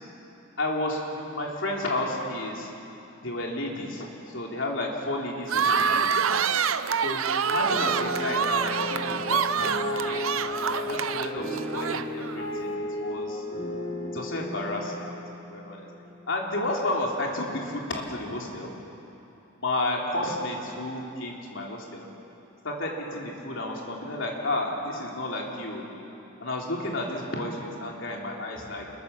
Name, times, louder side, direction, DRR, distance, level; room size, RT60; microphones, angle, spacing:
voice 1, 0.6-1.0 1.3-2.7 3.2-6.5 7.0-9.7 10.0-10.3 10.6-12.7 13.0-13.4 14.1-15.1 15.5-15.9 16.3-18.7 19.6-22.1 22.6-25.9 26.4-27.5 27.8-28.9, left 1 dB, 65° left, -1 dB, 3.6 m, -32 dB
sound 1, 5.5-12.4, right 6 dB, 75° right, 0.7 m, -26 dB
sound 2, 7.7-16.2, left 1 dB, 45° left, 7.3 m, -34 dB
26.5 x 22.0 x 7.1 m, 2.9 s
head